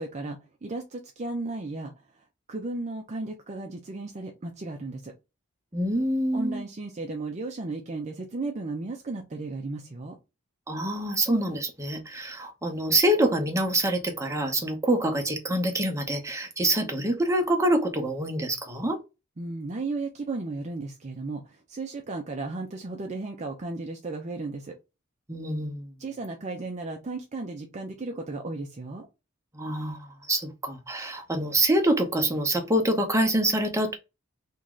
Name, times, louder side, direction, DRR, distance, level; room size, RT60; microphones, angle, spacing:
voice 1, 0.0-5.1 6.3-10.2 19.4-24.7 26.0-29.1, right 3 dB, 35° right, 0.5 m, -35 dB
voice 2, 5.7-6.6 10.7-19.0 25.3-25.9 29.5-34.0, right 1 dB, 15° right, 0.9 m, -26 dB
3.0 x 2.7 x 3.6 m
head